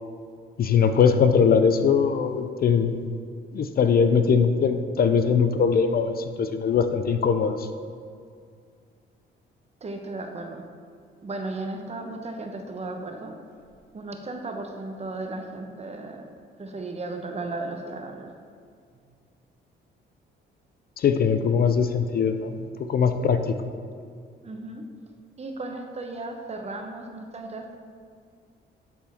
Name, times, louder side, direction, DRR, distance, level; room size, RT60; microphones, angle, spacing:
voice 1, 0.6-3.0 3.5-7.7 21.0-22.5 22.9-23.4, left 6 dB, 50° left, 9 dB, 0.5 m, -21 dB
voice 2, 9.8-10.6 11.2-13.3 13.9-16.3 16.6-18.3 24.4-24.8 25.4-27.8, right 2 dB, 35° right, 4 dB, 0.9 m, -35 dB
11.5 x 4.3 x 3.6 m, 2.2 s
cardioid pair, 90°, 20 cm